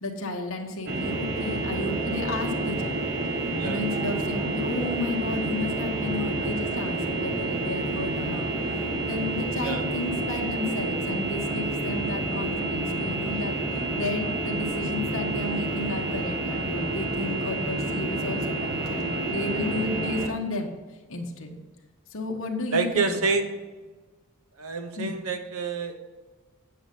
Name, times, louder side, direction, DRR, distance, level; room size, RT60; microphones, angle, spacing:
voice 1, 0.0-3.1 3.6-20.7 21.1-21.6 22.1-23.4 25.0-25.2, left 2 dB, 65° left, 0 dB, 1.3 m, -33 dB
sound 1, 0.9-20.3, right 2 dB, 50° right, 1.4 m, -29 dB
voice 2, 22.7-23.6 24.6-26.0, right 4 dB, 85° right, 8 dB, 0.9 m, -27 dB
9.0 x 6.8 x 5.3 m, 1.3 s
head